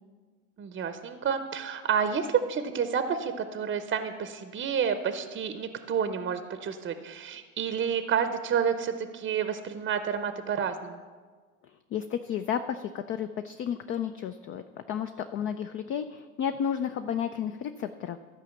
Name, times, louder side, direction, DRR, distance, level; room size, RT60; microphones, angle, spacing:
voice 1, 0.6-11.0, right 7 dB, 25° right, 9 dB, 0.7 m, -29 dB
voice 2, 11.6-18.2, left 8 dB, 30° left, 8 dB, 0.3 m, -32 dB
13.0 x 4.9 x 7.1 m, 1.5 s
hypercardioid pair, 85°, 46 cm